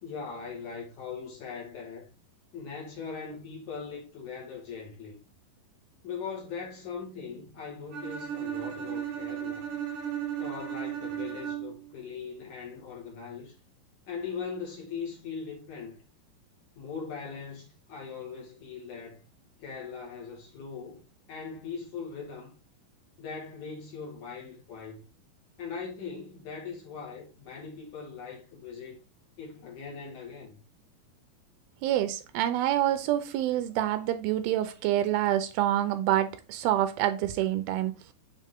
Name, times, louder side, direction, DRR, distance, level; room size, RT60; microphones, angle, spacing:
voice 1, 0.0-2.1 2.5-5.2 6.0-9.7 10.4-13.5 14.1-16.0 16.8-19.2 19.6-21.0 21.3-22.5 23.2-25.0 25.6-29.0 29.4-30.6, left 5 dB, 60° left, 2.6 m, -40 dB
Bowed string instrument, 7.9-11.9, right 10 dB, 65° right, 1.2 m, -35 dB
voice 2, 31.8-37.9, right 12 dB, 80° right, 2.4 m, -27 dB
7.5 x 3.6 x 3.5 m
omnidirectional pair, 4.4 m